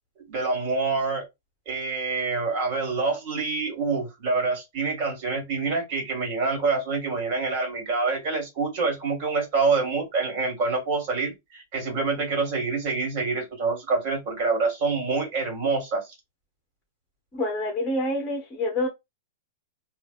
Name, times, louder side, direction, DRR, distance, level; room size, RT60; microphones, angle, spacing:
voice 1, 0.3-1.2 1.7-16.0, right 4 dB, 45° right, 1.8 m, -26 dB
voice 2, 17.3-18.9, left 1 dB, 15° left, 0.8 m, -27 dB
3.2 x 2.4 x 2.3 m
hypercardioid pair, 155°, 0 cm